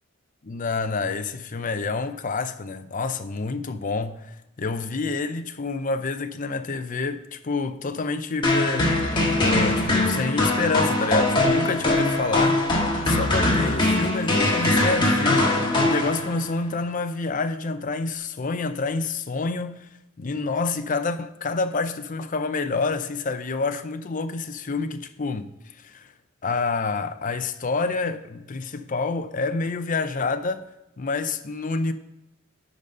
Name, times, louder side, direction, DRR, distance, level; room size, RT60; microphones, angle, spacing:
voice 1, 0.4-12.7 13.1-15.5 15.8-19.9 20.2-26.1 26.4-30.7 31.0-31.9, left 3 dB, 40° left, 0.6 m, -28 dB
sound 1, 8.4-16.6, left 2 dB, 25° left, 1.5 m, -22 dB
10.5 x 4.1 x 5.3 m
head